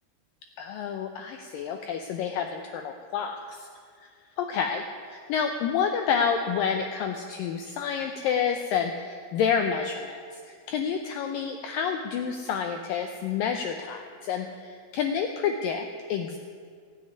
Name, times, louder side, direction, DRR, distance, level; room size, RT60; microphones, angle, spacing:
voice 1, 0.6-3.7 4.0-4.1 4.4-16.4, left 7 dB, 85° left, 5 dB, 2.0 m, -29 dB
15.5 x 7.7 x 9.5 m, 2.1 s
omnidirectional pair, 4.8 m